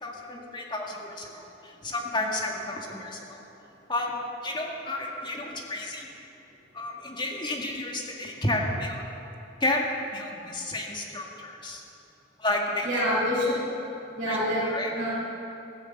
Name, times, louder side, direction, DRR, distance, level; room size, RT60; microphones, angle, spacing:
voice 1, 0.0-3.4 3.9-6.1 6.7-9.0 9.6-11.8 12.4-13.0 14.3-14.9, left 1 dB, 25° left, 0 dB, 1.9 m, -31 dB
voice 2, 12.8-13.6 14.1-15.1, equal, 45° right, -11 dB, 4.6 m, -26 dB
15.5 x 11.0 x 7.9 m, 2.8 s
head